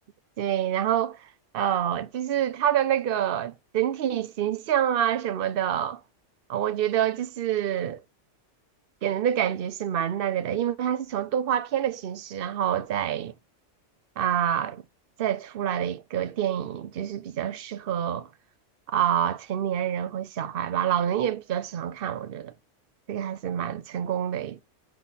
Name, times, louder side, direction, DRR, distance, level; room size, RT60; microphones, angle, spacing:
voice 1, 0.4-1.3 1.5-6.0 6.5-8.0 9.0-13.3 14.2-14.8 15.2-18.3 18.9-22.5 23.1-24.6, right 10 dB, 55° right, 0.8 m, -27 dB
8.1 x 5.5 x 4.0 m
omnidirectional pair, 1.3 m